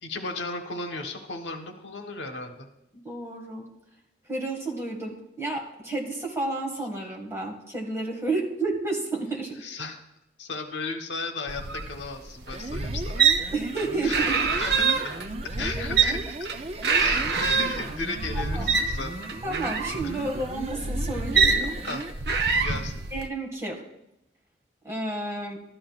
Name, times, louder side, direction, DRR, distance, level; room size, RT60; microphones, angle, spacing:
voice 1, 0.0-2.7 9.6-10.0 10.4-13.2 14.0-15.1 15.4-16.4 16.8-19.1 20.0-20.3 21.9-22.0 22.6-23.0, left 3 dB, 90° left, 4 dB, 1.2 m, -35 dB
voice 2, 2.9-3.7 4.3-9.5 13.5-14.4 15.6-16.2 18.3-18.7 19.4-21.8 23.1-23.8 24.8-25.6, right 2 dB, 15° right, -1 dB, 1.8 m, -31 dB
sound 1, 11.5-23.3, right 5 dB, 65° right, 0.7 m, -26 dB
sound 2, 12.4-22.2, right 2 dB, 35° right, 0.5 m, -38 dB
13.0 x 11.5 x 2.4 m, 0.85 s
head